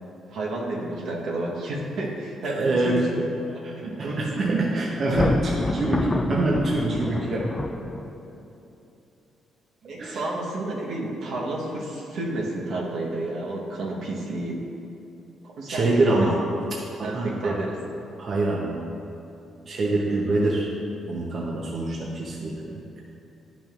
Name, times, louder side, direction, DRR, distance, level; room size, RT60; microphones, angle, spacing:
voice 1, 0.3-3.0 3.5-4.6 9.8-14.6 15.4-16.1 17.0-17.7, right 2 dB, 75° right, -3 dB, 1.2 m, -31 dB
voice 2, 2.4-3.3 3.6-7.5 9.8-10.2 15.7-16.4 16.7-17.6 18.2-18.8 19.7-20.7 21.1-23.0, right 2 dB, 50° right, -3 dB, 0.9 m, -25 dB
Thunder, 5.0-8.3, left 2 dB, 20° left, 0.3 m, -27 dB
10.5 x 5.9 x 2.5 m, 2.9 s
cardioid pair, 90°, 0 cm